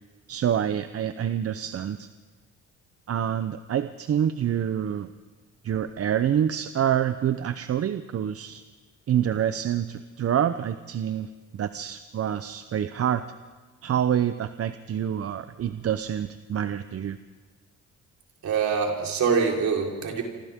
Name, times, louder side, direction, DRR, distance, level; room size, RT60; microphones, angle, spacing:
voice 1, 0.3-2.1 3.1-5.1 5.6-8.6 9.1-13.2 13.8-17.2, right 9 dB, 50° right, 11 dB, 0.8 m, -27 dB
voice 2, 18.4-20.2, right 5 dB, 65° right, 0 dB, 4.4 m, -24 dB
27.5 x 26.5 x 3.7 m, 1.4 s
cardioid pair, 90°, 30 cm